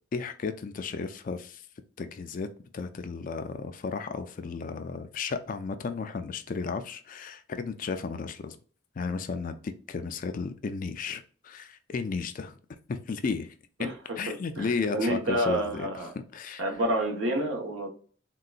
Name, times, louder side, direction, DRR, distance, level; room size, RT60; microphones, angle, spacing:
voice 1, 0.1-1.7 2.0-8.6 9.0-12.6 12.9-13.5 14.2-15.9 16.3-16.6, left 4 dB, 40° left, 0.3 m, -34 dB
voice 2, 14.3-16.1 16.6-17.9, right 1 dB, 80° right, 1.0 m, -29 dB
3.8 x 2.2 x 2.4 m
head